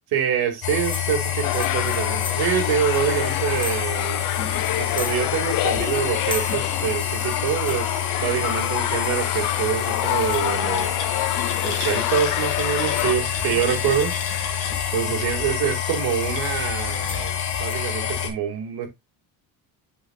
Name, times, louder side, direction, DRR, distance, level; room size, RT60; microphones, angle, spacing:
voice 1, 0.1-4.3 4.8-11.1 11.6-14.1 14.9-18.9, right 9 dB, 85° right, 2.1 m, -26 dB
sound 1, 0.6-18.3, left 8 dB, 80° left, 2.2 m, -27 dB
sound 2, 0.8-4.0 4.3-4.4 4.6-5.7 5.9-8.4 9.0-9.5 9.9-10.5 10.9-11.2 11.6-11.8 12.5-12.6 12.9-13.2 13.9-14.8 15.3-17.3 17.7-17.8, left 4 dB, 15° left, 0.5 m, -38 dB
sound 3, 1.4-13.1, left 15 dB, 60° left, 0.5 m, -28 dB
8.9 x 5.0 x 2.3 m
cardioid pair, 175°, 37 cm